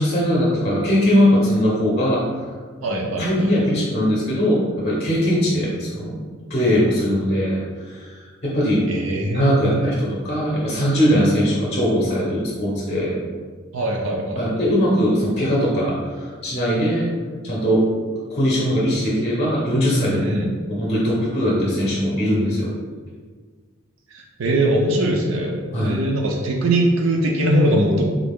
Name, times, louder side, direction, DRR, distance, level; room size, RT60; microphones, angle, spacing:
voice 1, 0.0-2.2 3.2-6.2 6.5-8.8 9.3-13.2 14.4-17.1 17.4-17.9 18.3-20.3 20.7-22.7 25.7-26.0, equal, 30° left, -5 dB, 0.6 m, -20 dB
voice 2, 2.8-3.5 8.9-9.9 13.7-14.4 20.2-20.5 24.1-28.0, right 1 dB, 65° right, 0 dB, 0.4 m, -21 dB
3.7 x 2.2 x 3.5 m, 1.5 s
head